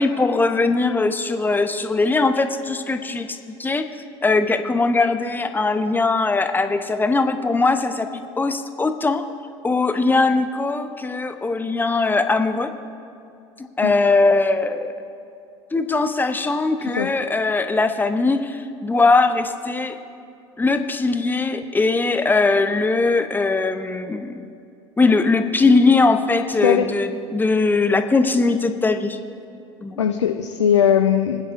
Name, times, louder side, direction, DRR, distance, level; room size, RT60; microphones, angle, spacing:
voice 1, 0.0-3.9 4.2-8.1 8.4-9.2 9.6-12.7 13.6-14.9 15.7-20.0 20.6-24.4 25.0-29.2 29.8-30.1, left 3 dB, 15° left, 8 dB, 0.8 m, -20 dB
voice 2, 30.0-31.5, left 8 dB, 85° left, 6 dB, 0.5 m, -19 dB
26.0 x 9.7 x 2.7 m, 2.6 s
figure-of-eight pair, 70°, 15 cm